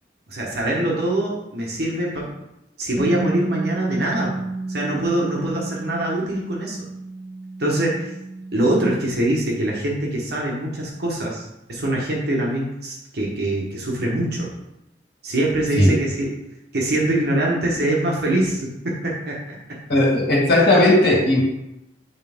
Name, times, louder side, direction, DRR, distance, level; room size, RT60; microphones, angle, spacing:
voice 1, 0.3-2.3 2.8-4.3 4.7-6.9 7.6-8.1 8.5-14.5 15.2-16.3 16.7-19.6 20.6-20.7, right 1 dB, 60° right, -3 dB, 1.2 m, -23 dB
Bass guitar, 3.0-9.2, right 2 dB, 5° right, 0.4 m, -31 dB
voice 2, 19.9-21.5, left 1 dB, 65° left, -4 dB, 2.1 m, -16 dB
8.4 x 3.5 x 3.5 m, 0.89 s
head